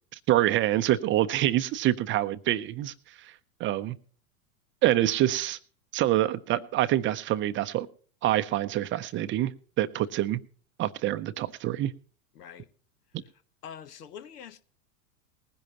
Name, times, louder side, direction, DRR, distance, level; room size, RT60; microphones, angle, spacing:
voice 1, 0.3-3.3 3.6-4.0 4.8-5.6 5.9-7.9 8.2-9.5 9.8-10.4 10.8-11.9, right 14 dB, 25° right, 0.6 m, -26 dB
voice 2, 12.3-12.7 13.6-14.6, left 8 dB, 80° left, 1.4 m, -44 dB
20.0 x 10.5 x 2.9 m
hypercardioid pair, 110°, 47 cm